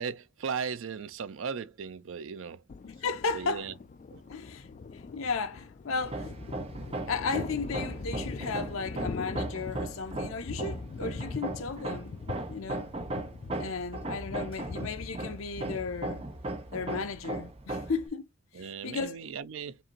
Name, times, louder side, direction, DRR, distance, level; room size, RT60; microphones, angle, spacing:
voice 1, 0.0-2.6 3.3-3.7 4.1-4.2 18.5-19.8, right 6 dB, 65° right, 0.4 m, -37 dB
Thunder, 2.7-17.5, left 4 dB, 35° left, 0.3 m, -43 dB
voice 2, 2.8-3.7 4.3-4.7 4.9-6.3 7.1-12.2 12.5-12.9 13.6-16.3 16.7-18.3 18.5-19.2, left 4 dB, 80° left, 0.6 m, -34 dB
Hammer, 6.0-18.1, right 2 dB, 30° right, 0.7 m, -37 dB
5.1 x 2.6 x 2.9 m
head